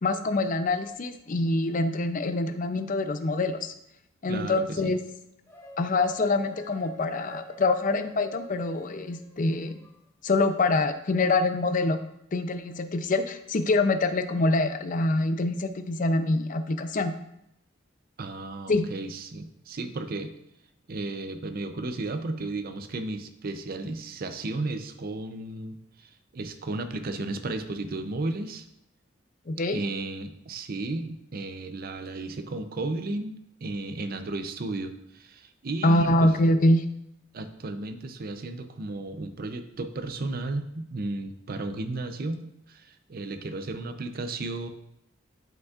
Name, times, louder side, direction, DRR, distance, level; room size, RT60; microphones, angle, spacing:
voice 1, 0.0-3.7 4.2-5.0 5.8-9.8 10.2-12.0 12.3-17.1 18.7-18.9 29.5-29.8 35.8-36.8, left 2 dB, 40° left, 9 dB, 0.5 m, -25 dB
voice 2, 4.3-4.9 18.2-20.3 20.9-28.7 29.7-33.3 33.6-36.4 37.3-44.7, right 2 dB, 50° right, 9 dB, 0.5 m, -34 dB
sound 1, 5.5-10.0, left 2 dB, 15° left, 1.0 m, -46 dB
11.5 x 5.2 x 2.4 m, 0.80 s
head